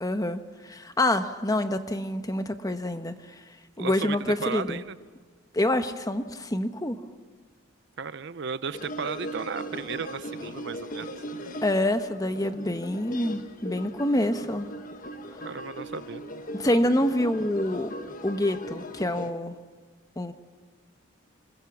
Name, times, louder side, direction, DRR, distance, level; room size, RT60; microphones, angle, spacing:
voice 1, 0.0-3.4 3.8-4.8 5.5-7.0 11.6-14.7 16.5-17.9 18.2-19.6 20.2-20.3, left 1 dB, 15° left, 8 dB, 1.0 m, -27 dB
voice 2, 3.8-5.0 8.0-11.1 15.4-16.2, right 5 dB, 60° right, 15 dB, 0.6 m, -34 dB
sound 1, 8.7-19.3, equal, 40° left, 1.4 m, -39 dB
26.0 x 21.0 x 7.2 m, 1.5 s
head